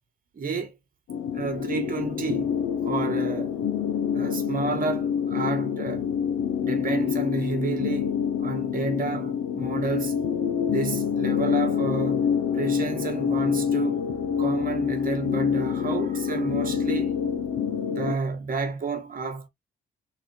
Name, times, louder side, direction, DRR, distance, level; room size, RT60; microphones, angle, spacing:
voice 1, 0.3-0.7 1.3-2.6 2.8-3.6 4.1-6.1 6.6-10.2 10.6-12.3 12.5-14.1 14.4-17.1 17.8-19.5, right 4 dB, 45° right, 1.7 m, -30 dB
sound 1, 1.1-18.2, left 7 dB, 75° left, 0.7 m, -26 dB
4.0 x 4.0 x 3.1 m
cardioid pair, 90°, 20 cm